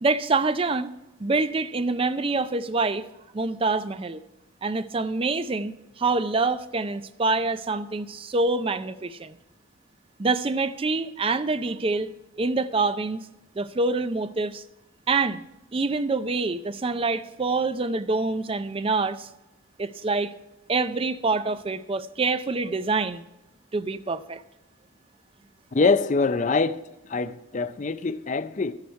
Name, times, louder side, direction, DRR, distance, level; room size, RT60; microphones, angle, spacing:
voice 1, 0.0-0.9 1.2-3.1 3.3-4.2 4.6-9.4 10.2-12.1 12.4-13.3 13.6-14.6 15.1-15.4 15.7-19.3 19.8-20.3 20.7-23.2 23.7-24.4, right 3 dB, 25° right, 0.4 m, -26 dB
voice 2, 25.7-26.8 27.1-28.7, left 4 dB, 35° left, 0.4 m, -24 dB
13.0 x 10.5 x 4.7 m
head